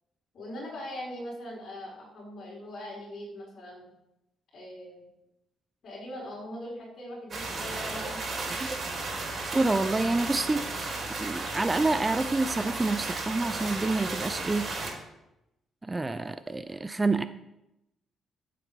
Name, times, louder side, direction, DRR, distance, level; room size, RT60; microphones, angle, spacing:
voice 1, 0.3-3.9 4.5-5.1 5.8-8.2, left 1 dB, 55° left, -4 dB, 5.0 m, -41 dB
sound 1, 7.3-14.9, right 3 dB, 45° right, 4.4 m, -34 dB
voice 2, 9.5-14.7 15.8-17.2, right 3 dB, 20° right, 11 dB, 0.6 m, -28 dB
14.0 x 7.6 x 5.2 m, 0.90 s
cardioid pair, 90°, 0 cm